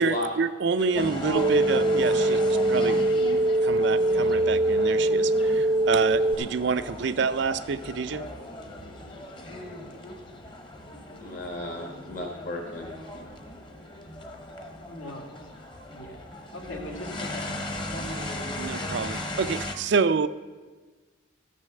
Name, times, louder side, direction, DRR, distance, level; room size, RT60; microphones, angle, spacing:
voice 1, 0.0-8.3 18.6-20.3, right 5 dB, 60° right, 12 dB, 0.4 m, -28 dB
sound 1, 0.9-19.8, left 1 dB, 25° left, 1.0 m, -37 dB
sound 2, 1.3-6.3, right 1 dB, 80° right, 0.9 m, -23 dB
voice 2, 11.2-12.9, left 1 dB, 45° left, 0 dB, 1.3 m, -34 dB
voice 3, 14.9-15.4 15.9-16.2 16.5-19.0, left 1 dB, 75° left, 2 dB, 1.9 m, -42 dB
13.5 x 6.5 x 7.6 m, 1.4 s
head